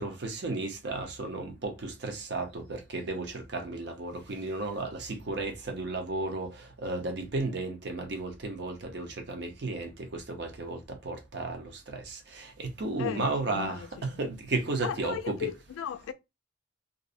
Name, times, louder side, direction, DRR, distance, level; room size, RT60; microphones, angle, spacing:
voice 1, 0.0-15.5, right 2 dB, 55° right, 0.6 m, -34 dB
voice 2, 13.0-13.9 14.8-16.1, left 9 dB, 85° left, 0.3 m, -36 dB
2.5 x 2.0 x 2.5 m
head